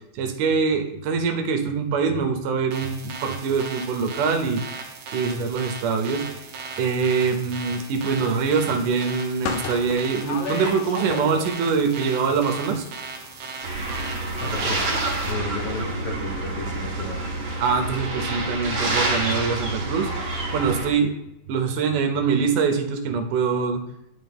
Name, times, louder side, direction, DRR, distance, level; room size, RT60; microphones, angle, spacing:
voice 1, 0.1-6.3 6.8-12.9 17.6-20.1 20.5-21.1 21.5-23.8, right 5 dB, 85° right, 5 dB, 2.4 m, -24 dB
sound 1, 2.7-15.3, right 4 dB, 70° right, 2.3 m, -37 dB
sound 2, 9.4-11.8 12.0-13.6 13.9-14.0 14.3-14.5, left 6 dB, 75° left, 2.0 m, -33 dB
sound 3, 13.6-20.9, right 2 dB, 50° right, 2.3 m, -28 dB
voice 2, 14.4-15.0 15.2-17.3, left 2 dB, 60° left, -1 dB, 1.7 m, -32 dB
10.5 x 4.3 x 3.5 m, 0.85 s
omnidirectional pair, 3.6 m